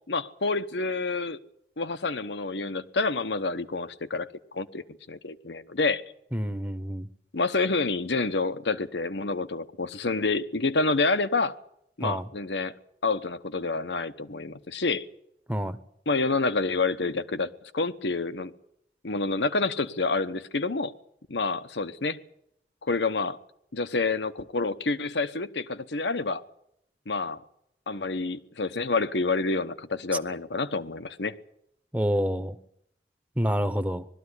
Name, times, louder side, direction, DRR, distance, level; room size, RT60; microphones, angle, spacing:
voice 1, 0.1-1.4 1.8-4.3 4.5-6.0 7.3-11.5 12.0-12.7 13.0-15.1 16.1-18.5 19.0-20.9 21.3-22.2 22.8-23.4 23.7-26.4 27.1-27.4 27.9-31.3, left 3 dB, 85° left, 12 dB, 1.1 m, -28 dB
voice 2, 6.3-7.1 12.0-12.3 15.5-15.8 31.9-32.6 33.4-34.1, equal, 10° right, 9 dB, 0.8 m, -27 dB
20.0 x 13.5 x 9.8 m, 0.75 s
head